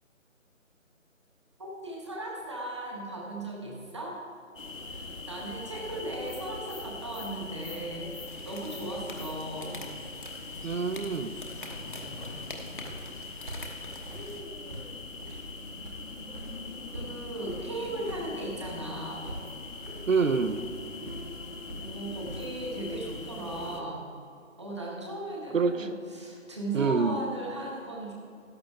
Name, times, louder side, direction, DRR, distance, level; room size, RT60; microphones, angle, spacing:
voice 1, 1.6-4.2 4.9-9.8 16.9-19.3 21.8-24.0 24.6-28.1, right 2 dB, 20° right, -2 dB, 1.2 m, -37 dB
sound 1, 4.6-23.8, left 3 dB, 70° left, 1.4 m, -42 dB
sound 2, 8.3-14.4, left 2 dB, 40° left, 1.1 m, -45 dB
sound 3, 9.0-23.9, right 1 dB, 45° right, 2.5 m, -46 dB
voice 2, 10.6-11.3 20.1-20.6 25.5-25.9 26.7-27.2, right 5 dB, 75° right, 10 dB, 0.9 m, -26 dB
13.5 x 10.0 x 3.5 m, 2.4 s
figure-of-eight pair, 170°, 39 cm